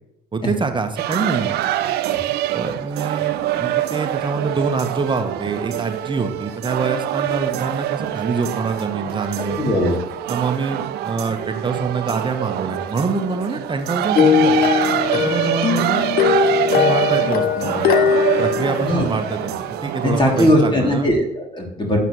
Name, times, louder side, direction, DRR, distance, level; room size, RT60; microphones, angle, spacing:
voice 1, 0.3-1.6 2.5-9.6 10.3-14.6 15.1-16.1 16.7-18.0 18.4-21.1, right 4 dB, 25° right, 6 dB, 1.4 m, -25 dB
sound 1, 1.0-20.5, right 12 dB, 55° right, 0.7 m, -25 dB
voice 2, 9.6-10.0 18.8-19.1 20.0-22.0, left 1 dB, 25° left, 0 dB, 3.0 m, -18 dB
sound 2, 14.1-19.6, left 7 dB, 45° left, 1.0 m, -19 dB
12.0 x 8.3 x 3.2 m, 0.83 s
figure-of-eight pair, 50°, 20 cm